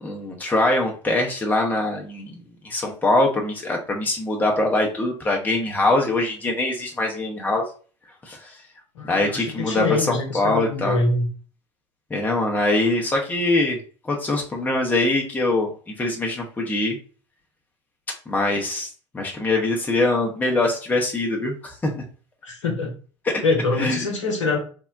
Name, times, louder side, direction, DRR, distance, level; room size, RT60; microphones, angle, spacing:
voice 1, 0.0-7.7 8.2-8.6 9.1-11.0 12.1-13.8 14.0-17.0 18.3-18.9 19.1-22.0 23.3-23.4 23.8-24.1, left 2 dB, 10° left, 0 dB, 0.6 m, -23 dB
voice 2, 8.9-11.3 22.4-22.9 23.4-24.6, left 3 dB, 75° left, 2 dB, 0.8 m, -24 dB
3.6 x 2.1 x 2.3 m, 0.39 s
figure-of-eight pair, 75°, 15 cm